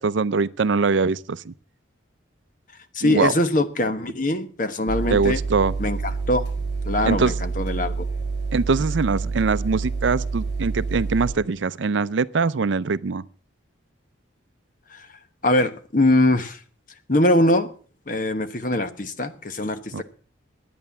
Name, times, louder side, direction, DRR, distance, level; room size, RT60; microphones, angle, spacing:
voice 1, 0.0-1.5 3.0-3.3 5.1-5.7 7.0-7.3 8.5-13.2 19.9-20.0, right 4 dB, 75° right, 0.5 m, -22 dB
voice 2, 2.9-5.4 5.8-6.0 6.3-6.4 6.8-8.1 14.9-15.1 15.4-16.6 17.1-17.7 18.1-20.0, left 1 dB, 45° left, 1.1 m, -22 dB
sound 1, 4.9-11.3, right 4 dB, 60° left, 4.4 m, -28 dB
11.0 x 9.4 x 7.0 m
head